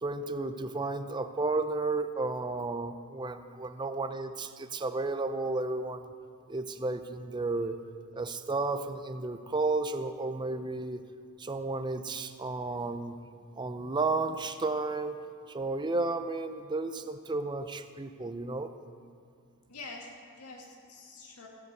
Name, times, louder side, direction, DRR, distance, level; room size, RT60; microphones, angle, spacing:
voice 1, 0.0-6.1 6.5-7.8 8.1-11.0 11.4-13.2 13.6-15.2 15.5-18.7, right 3 dB, 20° right, 10 dB, 0.5 m, -32 dB
voice 2, 19.7-21.5, left 3 dB, 90° left, -1 dB, 1.9 m, -46 dB
15.5 x 6.9 x 8.1 m, 2.3 s
head